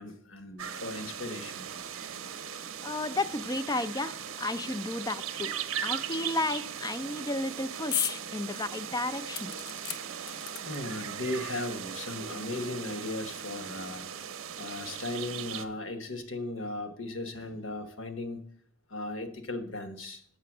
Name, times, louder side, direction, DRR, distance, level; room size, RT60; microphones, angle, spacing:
voice 1, 0.0-1.7 5.3-5.4 10.6-14.0 14.6-18.4 18.9-20.2, left 2 dB, 60° left, 1.1 m, -37 dB
sound 1, 0.6-15.6, right 8 dB, 65° right, 0.7 m, -39 dB
voice 2, 2.8-5.5 5.8-9.5, left 2 dB, 15° left, 0.3 m, -33 dB
sound 2, 7.9-8.2 8.6-8.7 9.3-11.0 11.9-12.0 12.2-12.3, left 8 dB, 85° left, 0.8 m, -34 dB
8.5 x 6.8 x 6.0 m
head